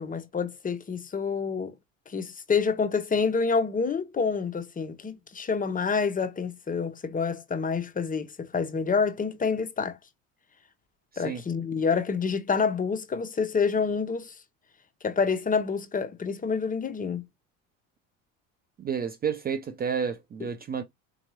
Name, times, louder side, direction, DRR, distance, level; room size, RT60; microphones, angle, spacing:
voice 1, 0.0-1.7 2.1-10.0 11.2-14.3 15.0-17.2, left 5 dB, 20° left, 0.8 m, -27 dB
voice 2, 18.8-20.8, right 7 dB, 25° right, 0.5 m, -30 dB
4.6 x 2.9 x 2.6 m
hypercardioid pair, 80°, 38 cm